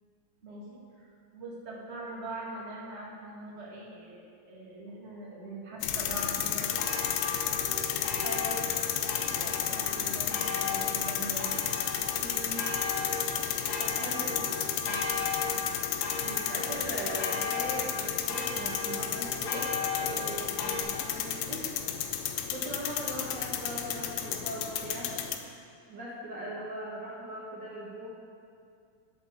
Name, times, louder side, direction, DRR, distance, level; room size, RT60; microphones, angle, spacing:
voice 1, 0.4-6.8 9.1-11.5 14.0-14.4 14.8-15.2 16.2-16.5, right 1 dB, 40° right, -5 dB, 0.9 m, -42 dB
sound 1, 5.8-25.4, left 10 dB, 90° left, 2.7 m, -32 dB
sound 2, 6.6-20.8, left 3 dB, 60° left, 1.6 m, -36 dB
voice 2, 8.2-8.7 12.2-12.6 13.8-14.2 16.4-21.6 22.5-25.3 25.9-28.1, right 1 dB, 85° right, -8 dB, 1.0 m, -40 dB
10.5 x 6.1 x 7.0 m, 2.4 s
omnidirectional pair, 4.6 m